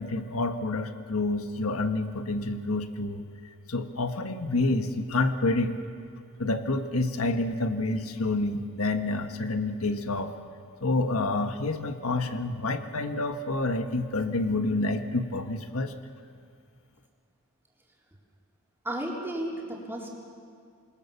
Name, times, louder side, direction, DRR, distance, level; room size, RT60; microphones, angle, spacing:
voice 1, 0.0-3.2 3.7-5.8 6.4-10.3 10.8-15.9, left 2 dB, 85° left, 7 dB, 1.4 m, -28 dB
voice 2, 18.8-20.1, right 1 dB, 10° right, -2 dB, 3.8 m, -33 dB
26.5 x 21.0 x 7.1 m, 2.3 s
head